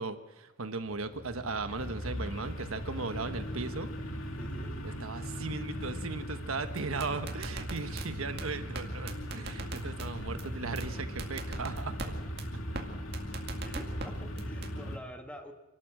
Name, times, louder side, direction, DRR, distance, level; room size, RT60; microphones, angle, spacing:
voice 1, 0.0-3.9 5.0-12.1, right 3 dB, 85° right, 9 dB, 1.2 m, -37 dB
sound 1, 1.0-15.0, equal, 85° left, 2.4 m, -38 dB
voice 2, 4.4-4.8 9.4-9.8 13.6-15.5, equal, 5° left, 4 dB, 1.6 m, -47 dB
sound 2, 6.8-8.1 8.4-8.5 8.7-8.8 9.1-10.1 10.4-10.5 10.8-10.9 11.2-12.1 12.4-12.5 12.7-12.8 13.1-14.1 14.4-14.7, right 3 dB, 50° right, 2.2 m, -39 dB
27.5 x 12.5 x 7.7 m, 1.1 s
head